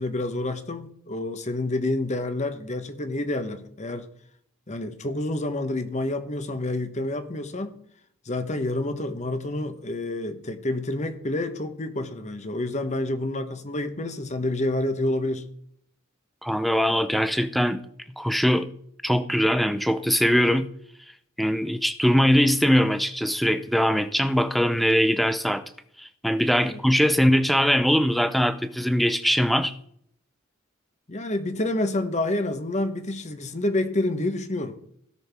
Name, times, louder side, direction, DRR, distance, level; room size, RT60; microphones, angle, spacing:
voice 1, 0.0-4.1 4.7-7.7 8.3-15.4 26.6-26.8 31.1-34.8, left 2 dB, 35° left, 1.0 m, -28 dB
voice 2, 16.4-17.8 18.2-18.7 19.0-20.7 21.4-25.6 26.0-29.7, equal, ahead, 0.5 m, -21 dB
16.5 x 6.3 x 3.5 m
head